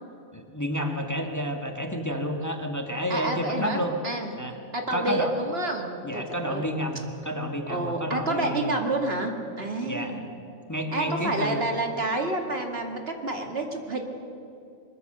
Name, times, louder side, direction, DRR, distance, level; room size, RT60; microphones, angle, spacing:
voice 1, 0.3-3.9 4.4-4.5 4.9-5.3 6.0-8.7 9.9-10.1 10.7-11.6, equal, 15° left, 3 dB, 1.5 m, -30 dB
voice 2, 3.1-4.3 4.7-6.7 7.7-10.2 10.9-14.0, right 2 dB, 55° right, 3 dB, 2.3 m, -29 dB
22.5 x 21.5 x 6.7 m, 2.7 s
omnidirectional pair, 1.3 m